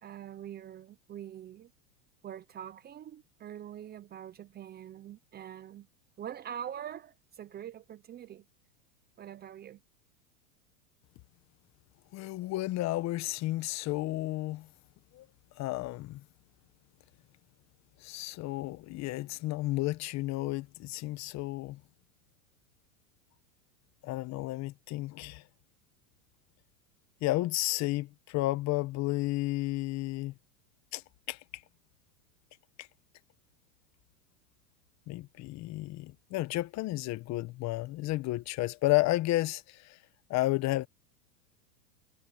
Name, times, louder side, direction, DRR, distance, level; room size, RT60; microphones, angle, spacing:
voice 1, 0.0-1.7 2.2-5.9 6.2-8.4 9.2-9.8, right 10 dB, 25° right, 0.8 m, -44 dB
voice 2, 12.1-14.7 15.1-15.3 15.6-16.2 18.0-21.8 24.0-25.4 27.2-30.3 30.9-31.0 31.3-31.4 32.8-32.9 35.1-40.0 40.3-40.9, left 18 dB, 40° left, 1.3 m, -32 dB
supercardioid pair, 130°, 42 cm